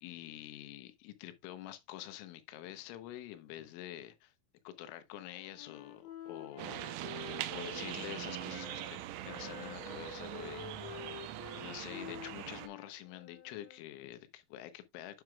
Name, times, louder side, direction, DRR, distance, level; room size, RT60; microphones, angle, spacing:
voice 1, 0.0-4.3 4.6-11.3 11.5-15.2, left 13 dB, 90° left, 3.3 m, -47 dB
Wind instrument woodwind instrument, 5.1-8.9 9.3-13.8, left 7 dB, 70° left, 3.4 m, -49 dB
sound 1, 6.6-12.7, right 13 dB, 85° right, 3.2 m, -42 dB
9.3 x 5.8 x 2.3 m
omnidirectional pair, 5.5 m